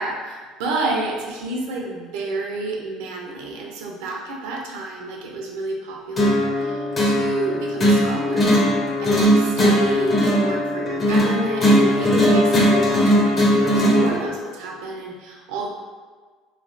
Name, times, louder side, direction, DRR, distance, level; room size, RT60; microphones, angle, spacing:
voice 1, 0.0-8.5 9.0-13.2 13.6-15.7, right 3 dB, 90° right, -1 dB, 0.5 m, -30 dB
sound 1, 6.2-14.1, equal, 30° left, 0.7 m, -18 dB
3.1 x 2.6 x 2.5 m, 1.5 s
cardioid pair, 120°, 0 cm